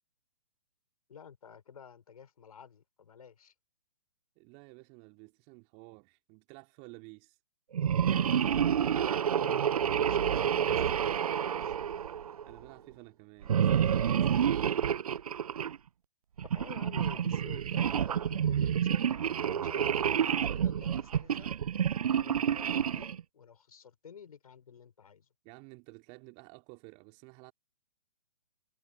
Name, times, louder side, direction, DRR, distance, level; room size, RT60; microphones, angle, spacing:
voice 1, 1.1-3.5 8.1-11.7 16.5-21.5 22.1-25.3, left 7 dB, 65° left, 5.8 m, -52 dB
voice 2, 4.4-7.4 12.4-14.9 25.4-27.5, right 32 dB, 30° right, 2.6 m, -52 dB
sound 1, 7.7-12.6 13.4-15.8 16.4-23.2, right 8 dB, 65° right, 0.7 m, -29 dB
figure-of-eight pair, 125°, 21 cm